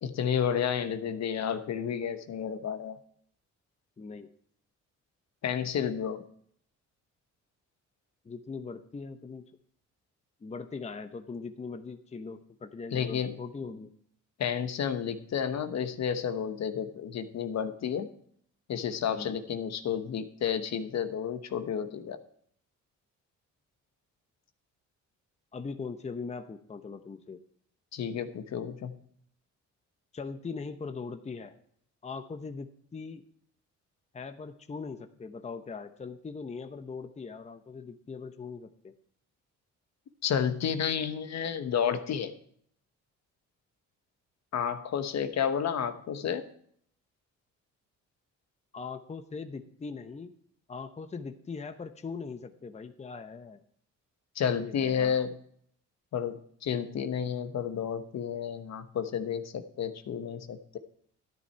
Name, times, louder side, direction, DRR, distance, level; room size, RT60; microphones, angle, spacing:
voice 1, 0.0-3.0 5.4-6.2 12.9-13.3 14.4-18.1 18.7-22.2 27.9-29.0 40.2-42.3 44.5-46.4 54.3-55.3 56.1-56.4 56.6-60.8, left 8 dB, 60° left, 9 dB, 1.1 m, -31 dB
voice 2, 4.0-4.3 8.2-9.5 10.4-13.9 19.1-19.4 25.5-27.4 30.1-31.5 32.0-33.2 34.1-38.9 48.7-50.3 50.7-53.6 54.5-55.2, left 4 dB, 20° left, 9 dB, 0.8 m, -40 dB
12.0 x 10.0 x 4.5 m, 0.64 s
cardioid pair, 90°, 30 cm